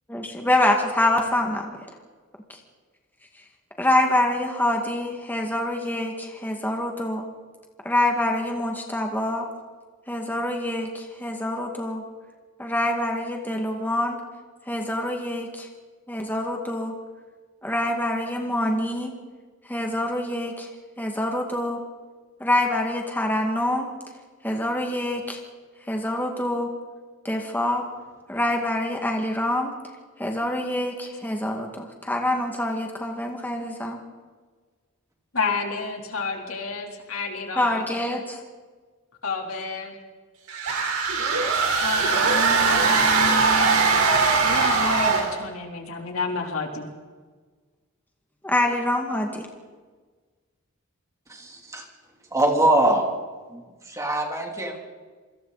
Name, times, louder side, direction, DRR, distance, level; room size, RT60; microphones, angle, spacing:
voice 1, 0.1-1.7 3.8-7.3 7.8-9.5 10.1-12.0 12.6-14.2 14.7-15.7 16.1-16.9 17.6-19.1 19.7-20.7 21.0-21.8 22.4-23.9 24.4-25.4 25.9-26.7 27.2-27.9 28.3-29.7 30.2-34.0 37.6-38.4 48.4-49.5, left 1 dB, 10° left, 1 dB, 2.1 m, -25 dB
voice 2, 35.3-37.9 39.2-40.0 41.8-44.0 44.4-46.9, left 4 dB, 75° left, 1 dB, 3.7 m, -30 dB
sound 1, 40.5-45.4, right 4 dB, 85° right, 4.3 m, -21 dB
voice 3, 51.3-51.9 52.3-53.1 53.5-54.8, right 1 dB, 15° right, 1 dB, 3.1 m, -23 dB
28.0 x 25.0 x 4.2 m, 1.4 s
head